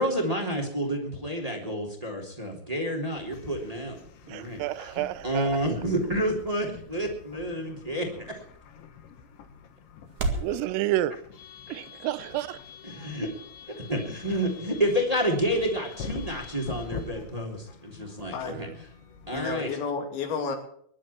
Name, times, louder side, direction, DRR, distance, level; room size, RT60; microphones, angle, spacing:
voice 1, 0.0-4.0 4.2-4.6 4.9-8.3 10.3-10.6 12.8-13.3 13.9-18.7 19.3-19.7, equal, 10° right, 1 dB, 2.4 m, -29 dB
sound 1, 3.1-19.5, left 6 dB, 65° left, 3.9 m, -45 dB
sound 2, 4.3-10.6, right 3 dB, 50° right, 2.3 m, -39 dB
voice 2, 4.3-5.6 10.4-11.2 11.7-12.6 18.4-18.7, right 14 dB, 90° right, 16 dB, 3.4 m, -30 dB
voice 3, 19.3-20.6, left 5 dB, 90° left, 3 dB, 5.6 m, -31 dB
23.0 x 11.5 x 4.5 m, 0.63 s
omnidirectional pair, 5.8 m